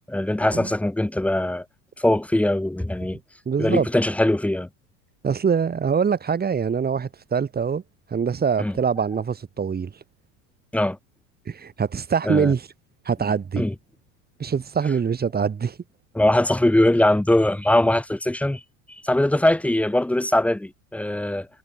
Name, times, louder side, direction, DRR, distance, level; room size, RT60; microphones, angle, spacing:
voice 1, 0.1-1.6 2.0-3.2 3.6-4.7 8.6-8.7 10.7-11.0 12.2-12.5 13.6-13.7 16.1-18.6 19.0-21.5, left 1 dB, 5° left, 0.9 m, -21 dB
voice 2, 3.5-3.9 5.2-7.8 8.1-9.9 11.5-12.7 13.1-13.6 14.4-15.8, right 6 dB, 20° right, 1.7 m, -24 dB
supercardioid pair, 95°, 42 cm